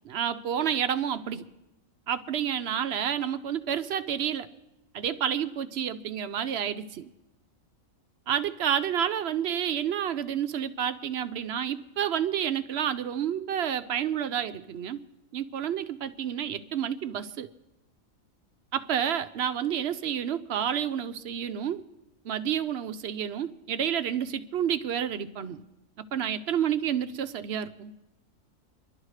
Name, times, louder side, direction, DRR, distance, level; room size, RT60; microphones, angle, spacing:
voice 1, 0.0-1.4 2.1-4.5 4.9-7.1 8.3-15.0 15.3-17.5 18.7-21.8 22.2-25.6 26.1-27.9, right 9 dB, 60° right, 11 dB, 0.7 m, -29 dB
26.5 x 11.5 x 3.2 m, 0.96 s
omnidirectional pair, 1.4 m